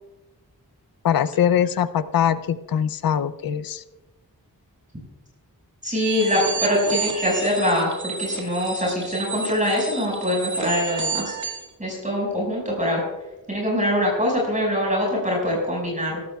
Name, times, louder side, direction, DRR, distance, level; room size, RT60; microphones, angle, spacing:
voice 1, 1.0-3.8, left 9 dB, 70° left, 14 dB, 0.5 m, -22 dB
voice 2, 5.8-11.4 11.8-13.0 13.5-16.2, equal, 20° right, -2 dB, 5.5 m, -23 dB
sound 1, 5.9-11.7, right 4 dB, 50° right, 2.1 m, -30 dB
23.0 x 12.5 x 2.3 m, 1.1 s
wide cardioid pair, 105°, 37 cm